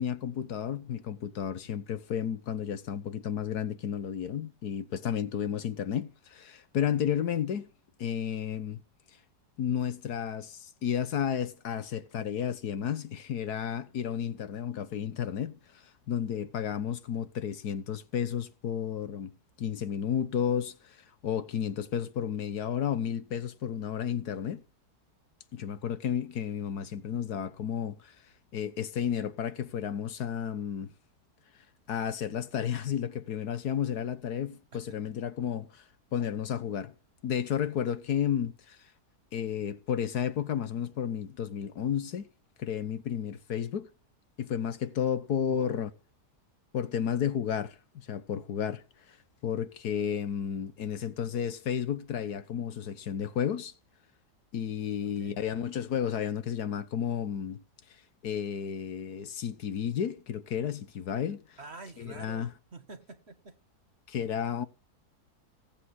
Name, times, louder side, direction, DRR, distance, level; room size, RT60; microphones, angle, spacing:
voice 1, 0.0-7.7 8.0-8.8 9.6-15.6 16.1-19.3 19.6-21.0 21.2-24.6 25.5-28.1 28.5-30.9 31.9-35.8 36.1-36.9 37.2-38.8 39.3-42.3 42.6-43.9 44.4-45.9 46.7-49.2 49.4-53.7 54.5-57.6 58.2-61.6 62.0-62.5 64.1-64.7, left 8 dB, 70° left, 1.6 m, -32 dB
voice 2, 45.5-45.8 55.0-55.4 61.6-63.6, right 3 dB, 40° right, 1.9 m, -46 dB
17.5 x 8.6 x 9.6 m
omnidirectional pair, 1.7 m